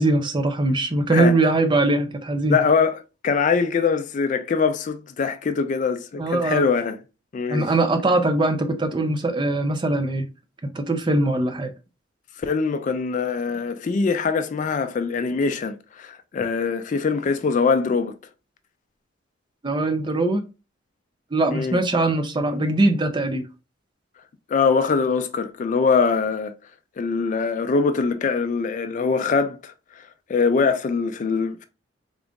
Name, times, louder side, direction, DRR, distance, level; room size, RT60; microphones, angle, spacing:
voice 1, 0.0-2.6 6.2-6.7 7.5-10.3 10.7-11.7 19.6-20.4 21.3-23.5, right 2 dB, 25° right, 0.5 m, -21 dB
voice 2, 2.5-7.0 7.3-7.7 12.4-18.2 21.5-21.8 24.5-26.5 27.0-31.6, left 5 dB, 40° left, 0.3 m, -23 dB
3.8 x 2.4 x 3.5 m
head